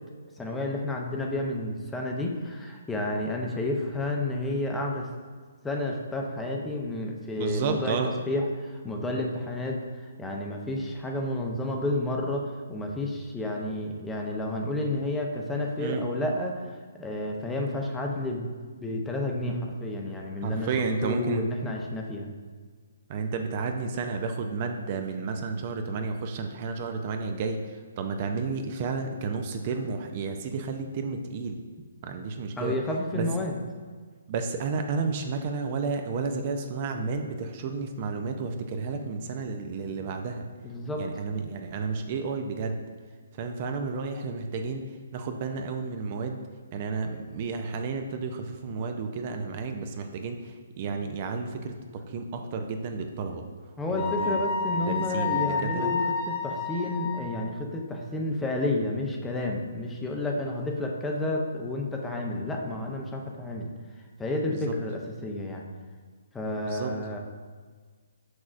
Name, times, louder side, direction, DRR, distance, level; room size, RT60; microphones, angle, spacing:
voice 1, 0.4-5.1 5.6-16.6 17.0-18.5 18.8-22.3 32.6-33.6 40.6-41.0 53.8-56.0 56.4-63.7 64.2-65.6 66.3-67.2, left 1 dB, 10° left, 0 dB, 0.6 m, -31 dB
voice 2, 7.4-8.1 15.8-16.0 19.5-19.6 20.4-21.4 23.1-27.6 28.0-31.6 32.0-32.8 33.1-33.2 34.3-40.4 41.0-42.8 43.4-44.8 45.1-46.4 46.7-53.5 53.9-54.4 54.7-55.9 64.5-64.7 66.6-66.9, right 4 dB, 40° right, 5 dB, 0.5 m, -32 dB
Wind instrument woodwind instrument, 54.0-57.4, left 5 dB, 40° left, 0.8 m, -30 dB
6.1 x 6.0 x 2.5 m, 1.5 s
hypercardioid pair, 145°, 0 cm